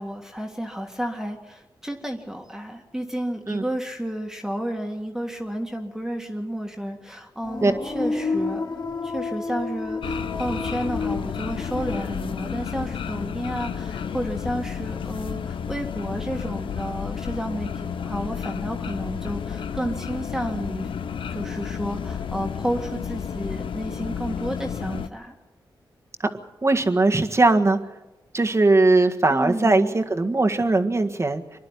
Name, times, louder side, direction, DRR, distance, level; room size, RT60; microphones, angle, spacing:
voice 1, 0.0-8.7 9.0-20.9 21.3-25.4 29.3-30.0, equal, 5° right, 2 dB, 2.1 m, -31 dB
sound 1, 7.4-14.3 14.6-15.3, left 3 dB, 55° left, 4.2 m, -32 dB
sound 2, 10.0-25.1, left 7 dB, 85° left, 0.8 m, -31 dB
voice 2, 26.6-27.8 28.3-31.6, right 2 dB, 35° right, 5 dB, 1.7 m, -20 dB
25.0 x 11.0 x 10.0 m, 1.1 s
cardioid pair, 60°, 9 cm